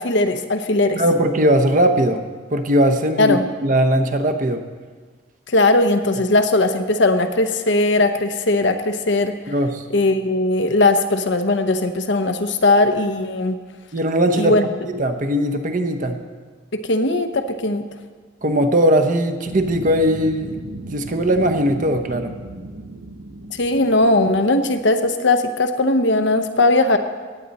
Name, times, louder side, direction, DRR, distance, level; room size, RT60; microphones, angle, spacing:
voice 1, 0.0-1.0 3.2-3.4 5.5-9.3 9.9-13.5 14.4-14.7 16.7-17.8 23.5-27.0, left 2 dB, 65° left, 7 dB, 0.8 m, -18 dB
voice 2, 1.0-2.2 2.5-4.6 9.5-9.8 13.9-14.6 14.9-16.2 18.4-20.6 20.9-22.3, equal, 40° right, 7 dB, 0.8 m, -19 dB
sound 1, 19.4-25.0, right 2 dB, 85° right, 1.1 m, -36 dB
17.5 x 8.9 x 4.2 m, 1.5 s
head